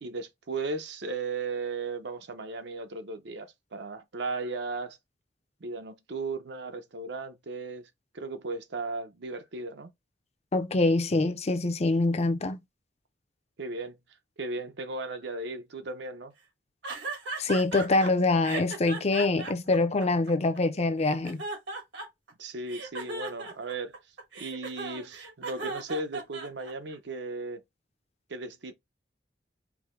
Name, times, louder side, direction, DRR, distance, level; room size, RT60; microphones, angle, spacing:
voice 1, 0.0-5.0 5.6-7.9 8.1-9.9 13.6-14.0 14.4-16.3 22.4-23.9 24.4-27.6 28.3-28.7, right 3 dB, 65° right, 0.7 m, -36 dB
voice 2, 10.5-12.6 17.4-21.4, left 2 dB, 35° left, 0.6 m, -25 dB
sound 1, 16.8-18.1 18.4-20.6 21.0-22.3 22.7-26.9, right 3 dB, 85° right, 1.7 m, -37 dB
4.7 x 2.1 x 3.6 m
head